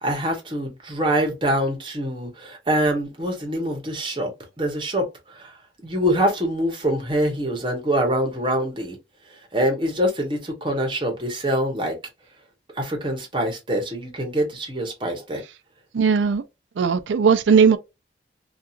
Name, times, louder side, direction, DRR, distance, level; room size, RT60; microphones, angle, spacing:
voice 1, 0.0-4.3 4.6-5.1 5.4-5.5 5.8-9.0 9.5-11.9 12.8-15.4, equal, 25° right, 0.9 m, -24 dB
voice 2, 15.9-16.4 16.8-17.8, right 6 dB, 85° right, 0.4 m, -17 dB
2.8 x 2.3 x 2.4 m
head